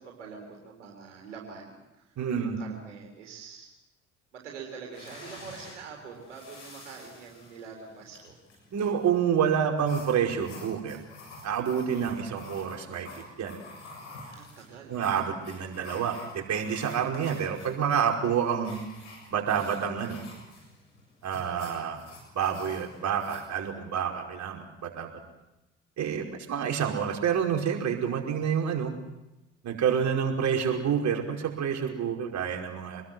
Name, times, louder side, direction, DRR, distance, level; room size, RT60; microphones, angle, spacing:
voice 1, 0.0-3.7 4.3-8.4 11.9-12.2 14.3-15.0 26.2-26.3, right 5 dB, 85° right, 0 dB, 3.7 m, -45 dB
voice 2, 2.2-2.6 8.7-11.0 11.4-13.1 13.4-13.6 14.9-18.8 19.3-20.2 21.2-22.0 22.3-25.1 26.0-28.9 29.6-33.0, right 8 dB, 50° right, 1 dB, 5.2 m, -28 dB
sound 1, 4.9-23.4, left 2 dB, 85° left, 7.2 m, -48 dB
27.0 x 21.0 x 7.8 m, 0.97 s
figure-of-eight pair, 50°, 35 cm